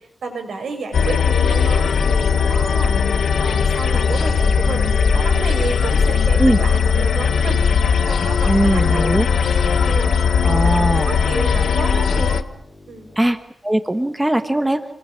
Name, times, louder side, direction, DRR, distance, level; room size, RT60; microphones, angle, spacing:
voice 1, 0.2-9.3 9.8-10.1 10.4-12.5 12.9-13.1, right 4 dB, 85° right, 5 dB, 7.0 m, -31 dB
sound 1, 0.9-12.4, left 6 dB, 80° left, 1.3 m, -18 dB
sound 2, 0.9-13.3, left 1 dB, 15° left, 6.2 m, -44 dB
sound 3, 3.9-9.0, left 3 dB, 55° left, 5.8 m, -31 dB
voice 2, 8.5-9.3 10.4-11.1 13.2-13.4 13.6-14.8, right 1 dB, 10° right, 8 dB, 1.3 m, -19 dB
29.0 x 21.5 x 7.4 m, 0.66 s
wide cardioid pair, 170°, 0 cm